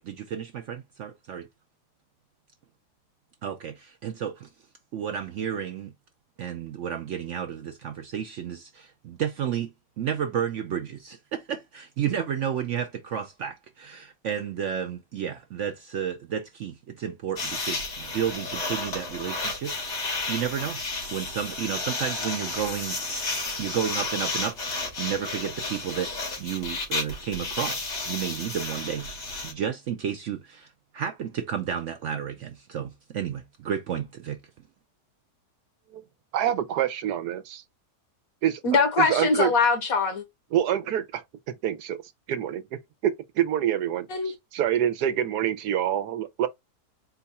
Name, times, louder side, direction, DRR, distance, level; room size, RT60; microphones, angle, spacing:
voice 1, 0.0-1.5 3.4-4.5 4.9-5.9 6.4-20.9 21.1-24.6 25.0-26.1 26.4-34.4, right 8 dB, 70° right, 0.7 m, -32 dB
sound 1, 17.4-29.5, left 3 dB, 85° left, 2.4 m, -32 dB
voice 2, 36.3-37.6 38.4-38.6 39.0-39.5 40.5-41.2 41.6-42.0 42.3-46.5, right 10 dB, 85° right, 1.2 m, -26 dB
voice 3, 38.6-40.2 44.1-44.3, left 4 dB, 65° left, 1.4 m, -22 dB
4.5 x 2.2 x 4.1 m
omnidirectional pair, 1.7 m